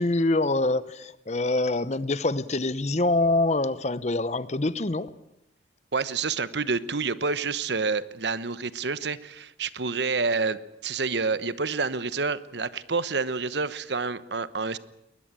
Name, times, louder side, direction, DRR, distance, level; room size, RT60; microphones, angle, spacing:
voice 1, 0.0-5.1, left 2 dB, 40° left, 0.8 m, -25 dB
voice 2, 5.9-14.8, right 4 dB, 70° right, 1.0 m, -28 dB
21.0 x 20.5 x 8.9 m
head